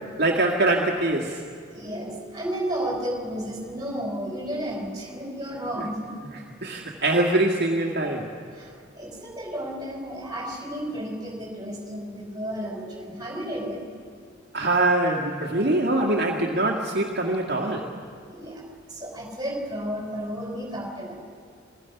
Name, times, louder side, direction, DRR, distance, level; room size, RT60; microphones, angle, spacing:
voice 1, 0.2-1.4 6.6-8.3 14.5-17.9, right 2 dB, 55° right, -1 dB, 2.0 m, -23 dB
voice 2, 1.7-6.2 8.5-13.8 18.3-18.6 18.9-21.1, equal, 20° right, 1 dB, 5.0 m, -32 dB
27.5 x 21.0 x 6.0 m, 2.3 s
head